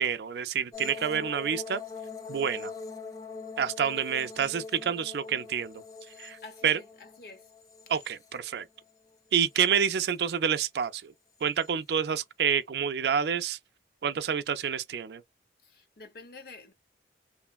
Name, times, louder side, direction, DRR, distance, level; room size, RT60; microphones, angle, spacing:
voice 1, 0.0-1.8 2.3-2.7 3.6-5.7 6.2-6.4 6.6-6.8 7.9-8.6 9.3-11.1 11.4-13.6 14.0-15.2, right 7 dB, 70° right, 0.4 m, -28 dB
sound 1, 0.7-8.9 9.3-10.1 11.4-11.7, left 4 dB, 20° left, 0.3 m, -43 dB
voice 2, 6.4-7.5 15.6-16.7, left 3 dB, 55° left, 0.8 m, -48 dB
3.1 x 2.1 x 2.3 m
head